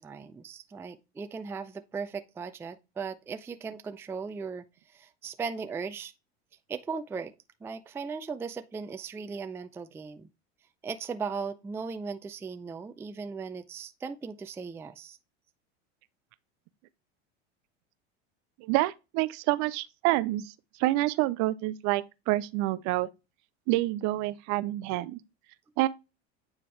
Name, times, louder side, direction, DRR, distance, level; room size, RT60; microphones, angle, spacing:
voice 1, 0.0-6.1 6.7-7.3 7.6-10.3 10.8-15.2, right 5 dB, 10° right, 0.3 m, -37 dB
voice 2, 18.6-20.5 20.8-23.1 23.7-25.2 25.8-25.9, right 17 dB, 55° right, 0.6 m, -27 dB
9.1 x 3.5 x 3.2 m
hypercardioid pair, 90°, 34 cm